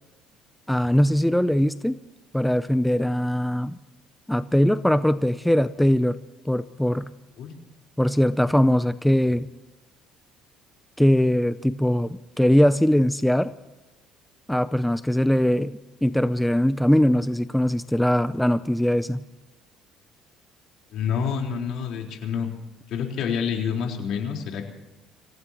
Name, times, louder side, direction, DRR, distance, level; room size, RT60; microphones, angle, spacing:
voice 1, 0.7-2.0 2.3-3.8 4.3-6.2 6.5-7.1 8.0-9.5 11.0-13.5 14.5-19.2, equal, 5° left, 13 dB, 0.5 m, -21 dB
voice 2, 20.9-22.5 22.9-24.7, left 7 dB, 65° left, 1 dB, 4.2 m, -28 dB
26.5 x 16.5 x 3.0 m, 1.1 s
cardioid pair, 125°, 0 cm